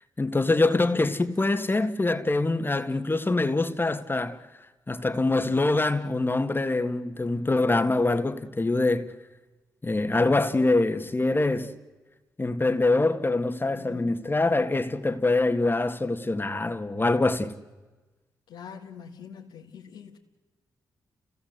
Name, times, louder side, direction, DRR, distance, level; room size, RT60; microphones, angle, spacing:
voice 1, 0.2-4.4 4.9-9.1 9.8-11.7 12.4-17.5, left 2 dB, 25° left, 1.8 m, -24 dB
voice 2, 13.7-14.1 18.5-20.2, left 7 dB, 90° left, 1.9 m, -44 dB
30.0 x 17.5 x 8.1 m
supercardioid pair, 50°, 8 cm